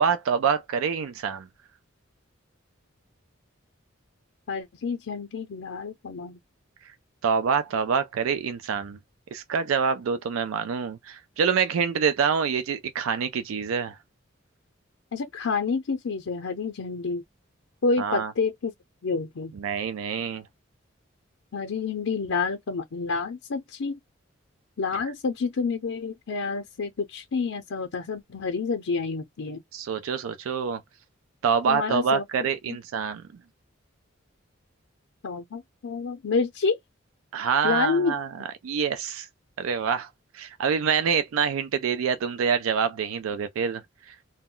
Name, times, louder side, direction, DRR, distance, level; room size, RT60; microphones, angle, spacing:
voice 1, 0.0-1.5 7.2-9.0 9.3-14.0 18.0-18.3 19.5-20.4 29.7-30.8 31.4-33.2 37.3-39.3 39.6-44.2, right 6 dB, 90° right, 0.4 m, -26 dB
voice 2, 4.5-6.4 15.1-17.2 17.8-18.7 19.0-19.5 21.5-24.0 24.8-29.6 31.7-32.2 32.7-32.8 35.2-36.8 37.6-38.1, left 4 dB, 80° left, 0.5 m, -28 dB
2.2 x 2.1 x 3.6 m
head